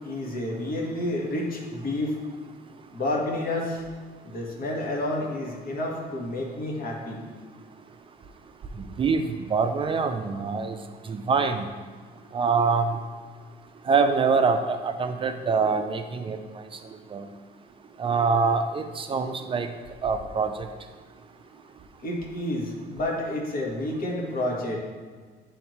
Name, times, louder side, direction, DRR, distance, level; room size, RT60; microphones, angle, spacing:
voice 1, 0.0-2.1 2.9-3.8 4.2-7.2 22.0-24.8, left 1 dB, 60° left, -1 dB, 1.5 m, -30 dB
voice 2, 9.5-10.8 11.1-11.6 12.3-12.9 13.9-16.4 17.1-17.2 18.0-19.7 20.0-20.5, right 5 dB, 30° right, 7 dB, 0.4 m, -24 dB
10.5 x 3.6 x 3.1 m, 1.5 s
cardioid pair, 110°, 17 cm